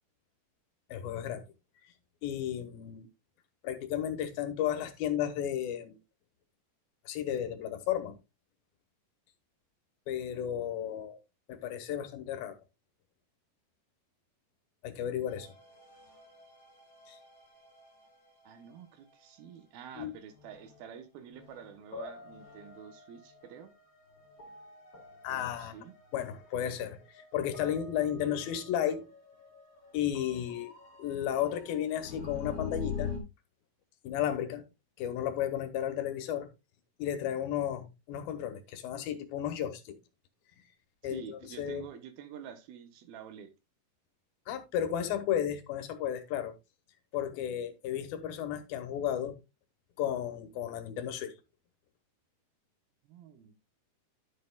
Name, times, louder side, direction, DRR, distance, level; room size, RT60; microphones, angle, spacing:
voice 1, 0.9-1.4 1.8-1.9 2.2-3.1 3.6-6.0 7.1-8.2 10.1-11.2 11.5-12.6 14.8-15.5 17.1-17.2 20.0-20.1 25.2-25.8 26.1-29.1 29.9-30.7 31.0-33.1 34.0-34.6 35.0-36.5 37.0-40.0 41.0-41.9 44.5-46.5 47.1-49.4 50.0-51.3, left 10 dB, 85° left, 2.8 m, -33 dB
sound 1, 15.3-19.2 20.4-20.8 21.3-33.2, left 6 dB, 45° left, 3.5 m, -45 dB
voice 2, 18.4-23.7 25.3-25.9 41.0-43.5 53.0-53.6, right 8 dB, 90° right, 3.0 m, -48 dB
11.0 x 7.7 x 2.3 m
omnidirectional pair, 4.2 m